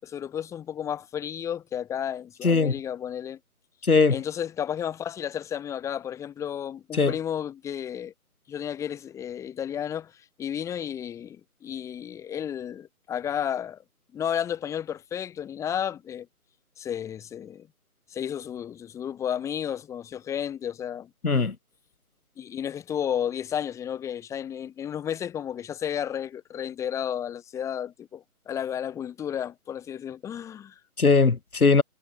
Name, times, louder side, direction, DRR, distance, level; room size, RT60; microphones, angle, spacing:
voice 1, 0.0-3.4 4.1-8.1 8.5-13.8 14.1-16.3 16.8-17.7 18.1-21.1 22.4-30.8, left 9 dB, 5° left, 5.0 m, -32 dB
voice 2, 21.2-21.5 31.0-31.8, left 4 dB, 75° left, 2.9 m, -20 dB
figure-of-eight pair, 160°, 44 cm